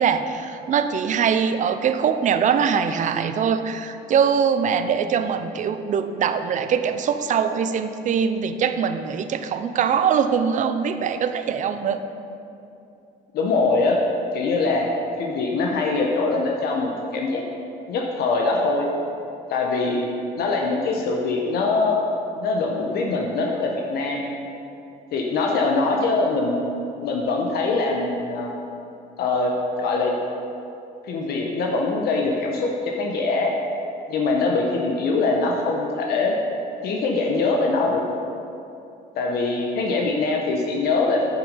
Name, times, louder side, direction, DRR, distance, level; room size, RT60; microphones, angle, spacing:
voice 1, 0.0-12.0, right 7 dB, 50° right, 9 dB, 0.6 m, -22 dB
voice 2, 13.3-14.0 14.3-14.9 15.2-17.4 17.9-18.9 19.5-20.1 20.4-22.0 22.4-24.2 25.1-26.6 27.0-28.5 29.2-29.5 29.8-30.2 31.1-33.6 34.1-36.4 36.8-38.0 39.2-41.2, left 3 dB, 70° left, 0 dB, 1.0 m, -23 dB
8.8 x 6.1 x 5.5 m, 2.7 s
cardioid pair, 110°, 17 cm